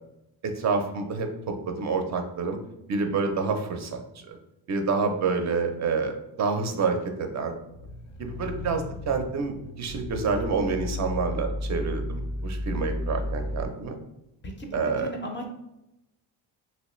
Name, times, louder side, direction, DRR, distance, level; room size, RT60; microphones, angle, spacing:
voice 1, 0.4-2.6 2.9-4.4 4.7-7.5 8.2-14.0 14.7-15.1, right 4 dB, 40° right, 5 dB, 0.5 m, -28 dB
sound 1, 7.7-13.7, left 1 dB, 90° left, 0.6 m, -34 dB
voice 2, 14.4-15.5, equal, 25° left, 3 dB, 0.4 m, -36 dB
3.1 x 2.9 x 3.0 m, 0.91 s
cardioid pair, 145°, 45 cm